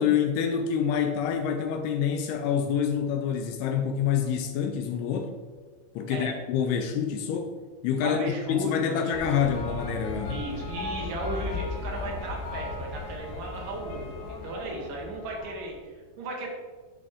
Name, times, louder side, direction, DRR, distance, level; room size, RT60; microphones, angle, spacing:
voice 1, 0.0-5.4 6.0-7.5 7.8-8.2 8.5-10.4, left 8 dB, 85° left, 6 dB, 2.3 m, -27 dB
voice 2, 8.0-9.4 10.3-16.5, right 2 dB, 65° right, -1 dB, 2.4 m, -36 dB
sound 1, 9.1-15.8, left 2 dB, 65° left, 3.2 m, -36 dB
12.0 x 4.1 x 3.6 m, 1.4 s
omnidirectional pair, 5.0 m